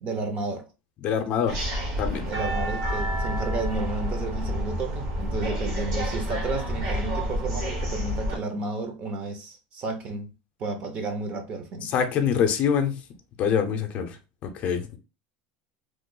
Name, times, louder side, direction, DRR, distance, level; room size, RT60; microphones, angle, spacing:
voice 1, 0.0-0.7 2.2-10.3 10.6-11.9, right 3 dB, 35° right, 0.7 m, -32 dB
voice 2, 1.0-1.6 2.0-2.2 11.9-12.9 13.4-14.1 14.5-15.0, left 7 dB, 40° left, 0.6 m, -24 dB
sound 1, 1.5-8.4, equal, 60° right, 1.2 m, -29 dB
3.1 x 2.0 x 3.7 m
supercardioid pair, 150°, 4 cm